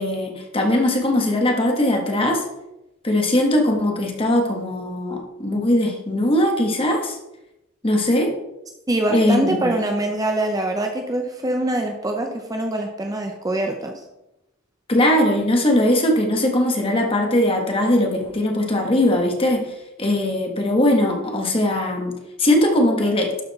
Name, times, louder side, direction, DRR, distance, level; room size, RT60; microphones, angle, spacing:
voice 1, 0.0-2.4 3.0-7.2 7.8-8.3 9.1-9.7 14.9-19.7 20.0-22.1 22.4-23.3, left 1 dB, 25° left, 2 dB, 1.4 m, -20 dB
voice 2, 8.9-13.9, right 1 dB, 20° right, 3 dB, 0.7 m, -24 dB
12.0 x 4.2 x 4.1 m, 0.91 s
head